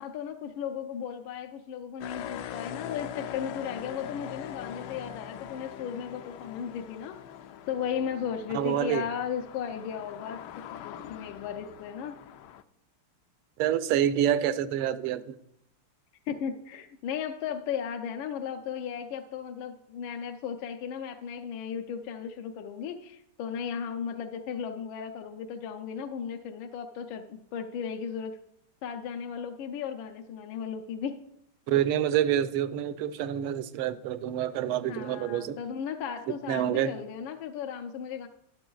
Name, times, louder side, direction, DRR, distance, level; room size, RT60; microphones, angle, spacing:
voice 1, 0.0-7.2 7.7-10.4 10.8-12.2 16.3-28.4 28.8-31.2 34.9-38.3, left 7 dB, 75° left, 1.3 m, -35 dB
sound 1, 2.0-12.6, left 10 dB, 90° left, 0.9 m, -42 dB
voice 2, 8.5-9.1 13.6-15.3 31.7-35.6 36.5-36.9, right 10 dB, 80° right, 1.4 m, -27 dB
21.0 x 7.8 x 2.3 m
omnidirectional pair, 2.4 m